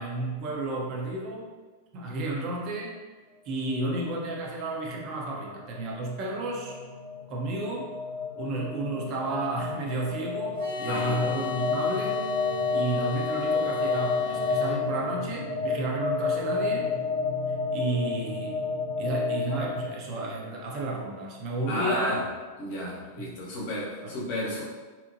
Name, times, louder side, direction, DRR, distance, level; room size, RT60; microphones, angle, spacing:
voice 1, 0.0-1.5 1.9-2.9 3.4-6.8 7.3-7.9 8.3-12.2 12.4-16.9 17.5-18.6 19.0-22.2 23.2-23.3 24.0-24.2, right 2 dB, 40° right, -2 dB, 0.5 m, -32 dB
sound 1, 3.7-19.8, left 4 dB, 15° left, 0.6 m, -31 dB
sound 2, 10.6-14.8, left 6 dB, 65° right, 1.1 m, -35 dB
voice 2, 10.9-11.2 21.7-22.2 22.6-24.6, left 1 dB, 50° left, -5 dB, 0.7 m, -32 dB
2.8 x 2.1 x 2.5 m, 1.4 s
figure-of-eight pair, 90°, 0 cm